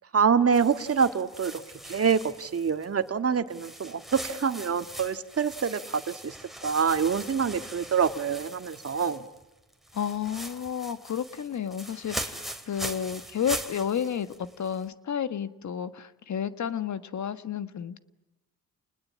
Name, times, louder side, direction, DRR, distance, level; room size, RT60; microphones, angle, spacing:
voice 1, 0.1-6.4 6.6-9.3, right 6 dB, 40° right, 9 dB, 1.8 m, -26 dB
sound 1, 0.5-3.1 3.5-9.4 9.7-14.9, right 1 dB, ahead, 3.2 m, -41 dB
voice 2, 9.9-18.0, left 8 dB, 50° left, 12 dB, 1.7 m, -31 dB
30.0 x 20.0 x 8.7 m, 1.0 s
supercardioid pair, 70°, 36 cm